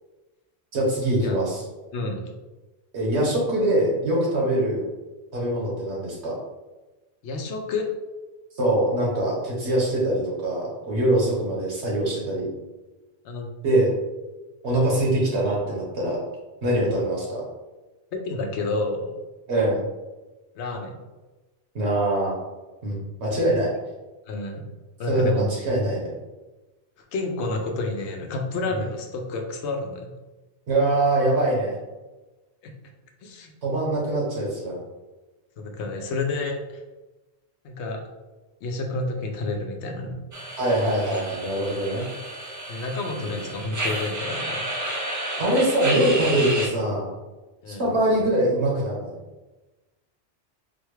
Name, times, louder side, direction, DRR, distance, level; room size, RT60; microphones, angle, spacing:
voice 1, 0.7-1.6 2.9-4.9 5.3-6.4 8.5-12.5 13.6-13.9 14.6-16.2 16.6-17.4 19.5-19.8 21.7-22.4 22.8-23.7 25.1-26.1 28.7-28.8 30.7-31.8 33.6-34.8 40.6-42.0 43.2-43.5 45.4-47.2 47.7-49.1, right 1 dB, 75° right, -3 dB, 1.3 m, -23 dB
voice 2, 1.9-2.2 7.2-7.9 13.2-13.5 16.8-16.9 18.1-19.1 20.6-20.9 24.3-24.6 25.0-25.5 27.1-30.1 32.6-32.7 33.2-33.5 35.6-36.6 37.6-38.0 38.6-40.2 42.7-44.6 47.6-48.0, left 2 dB, 90° left, 3 dB, 0.9 m, -29 dB
sound 1, 40.3-46.7, right 1 dB, 30° right, 0.3 m, -31 dB
4.1 x 2.2 x 3.1 m, 1.1 s
omnidirectional pair, 1.2 m